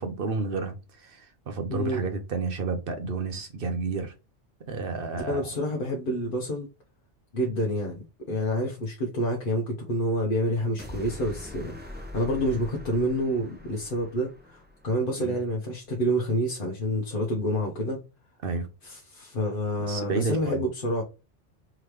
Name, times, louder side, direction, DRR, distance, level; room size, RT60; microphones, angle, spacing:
voice 1, 0.0-4.1 4.7-5.5 15.2-15.4 18.4-18.7 19.8-20.6, right 4 dB, 55° right, 0.8 m, -31 dB
voice 2, 1.7-2.0 5.3-6.7 7.3-18.0 18.8-21.0, equal, 50° left, 1.0 m, -28 dB
sound 1, 10.8-15.0, left 1 dB, 10° right, 0.8 m, -42 dB
3.7 x 3.1 x 3.1 m
omnidirectional pair, 1.2 m